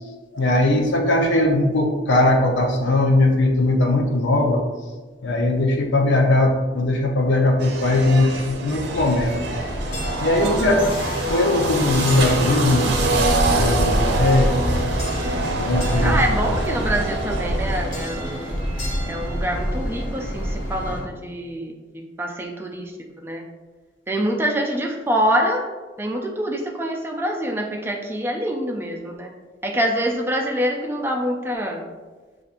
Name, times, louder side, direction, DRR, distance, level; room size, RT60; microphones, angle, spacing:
voice 1, 0.3-4.6 5.2-9.3 10.2-10.8 11.3-14.5 15.5-16.1, left 2 dB, 75° left, 2 dB, 0.6 m, -19 dB
sound 1, 7.6-18.8, right 2 dB, 60° right, 0.6 m, -25 dB
sound 2, 8.9-21.0, equal, 50° left, 1.5 m, -27 dB
voice 2, 10.6-10.9 16.0-18.5 19.1-21.7 22.2-22.9 23.2-23.4 24.1-25.7 26.0-29.3 29.6-31.8, equal, 10° right, 1 dB, 0.4 m, -25 dB
6.8 x 2.5 x 2.5 m, 1.3 s
head